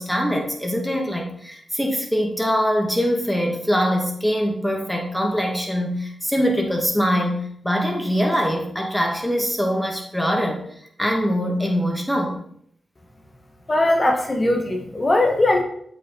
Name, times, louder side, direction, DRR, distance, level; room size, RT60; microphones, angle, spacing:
voice 1, 0.0-10.6 11.0-12.4, equal, 5° left, 1 dB, 2.0 m, -23 dB
voice 2, 13.7-15.6, left 1 dB, 35° left, 3 dB, 1.4 m, -19 dB
7.8 x 5.1 x 3.9 m, 0.67 s
cardioid pair, 55°, 0 cm